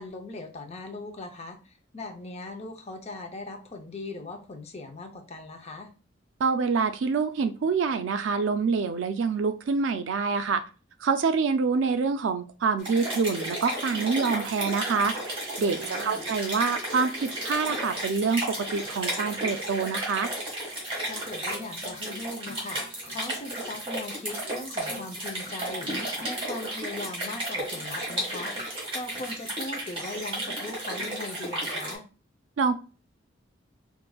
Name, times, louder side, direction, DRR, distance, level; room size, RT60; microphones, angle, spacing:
voice 1, 0.0-1.6 1.9-5.9 15.8-16.3 21.0-32.0, left 2 dB, 35° left, 5 dB, 0.6 m, -39 dB
voice 2, 6.4-10.6 11.0-15.1 15.6-20.3 32.6-32.7, right 5 dB, 70° right, 9 dB, 0.4 m, -26 dB
sound 1, 12.8-32.0, right 1 dB, 30° right, 1.5 m, -33 dB
4.6 x 2.5 x 2.3 m, 0.34 s
head